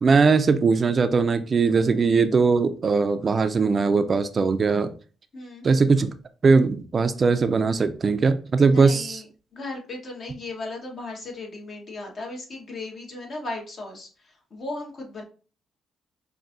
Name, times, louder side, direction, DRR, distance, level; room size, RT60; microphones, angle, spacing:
voice 1, 0.0-4.9 5.6-6.1 6.4-9.2, right 4 dB, 40° right, 10 dB, 0.3 m, -20 dB
voice 2, 5.3-5.7 8.6-9.3 9.5-15.2, left 2 dB, 50° left, 1 dB, 1.2 m, -36 dB
5.2 x 2.6 x 2.5 m, 0.38 s
cardioid pair, 90°, 0 cm